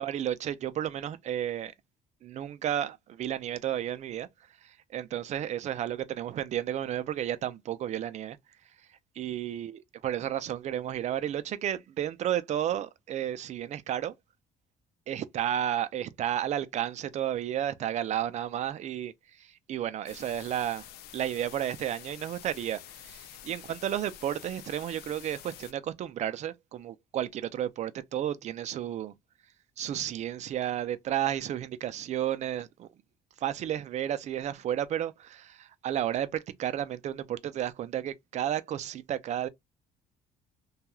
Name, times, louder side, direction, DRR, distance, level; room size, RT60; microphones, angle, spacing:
voice 1, 0.0-1.7 2.2-4.3 4.6-8.4 9.2-14.1 15.1-20.9 21.1-29.1 29.8-32.9 33.4-39.5, right 11 dB, 45° right, 0.4 m, -32 dB
sound 1, 20.1-25.7, left 11 dB, 80° left, 0.4 m, -48 dB
2.9 x 2.3 x 2.3 m
cardioid pair, 120°, 16 cm